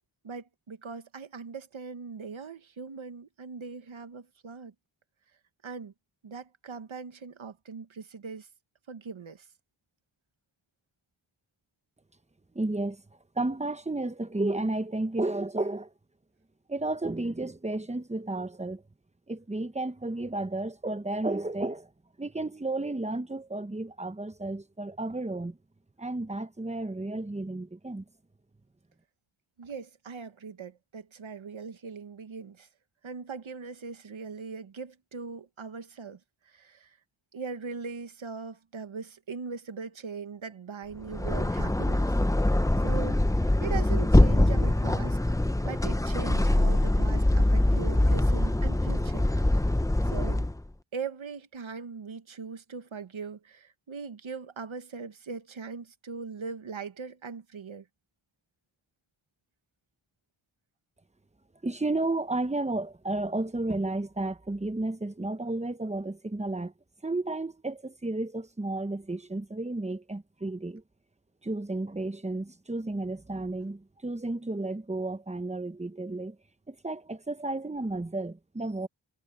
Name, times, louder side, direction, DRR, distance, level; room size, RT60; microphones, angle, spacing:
voice 1, 0.2-4.7 5.6-5.9 6.2-8.5 8.9-9.5 29.6-32.7 33.0-37.0 37.3-42.2 42.8-45.2 45.6-49.3 50.0-50.5 50.9-57.9, right 5 dB, 80° right, 1.5 m, -40 dB
voice 2, 12.5-13.0 13.3-15.9 16.7-18.8 19.3-21.9 22.2-25.6 26.0-28.0 61.6-66.7 67.0-70.8 71.4-76.4 76.7-78.9, right 2 dB, 15° right, 1.0 m, -32 dB
sound 1, 41.0-50.6, left 1 dB, 5° left, 0.6 m, -23 dB
wide cardioid pair, 70°, 47 cm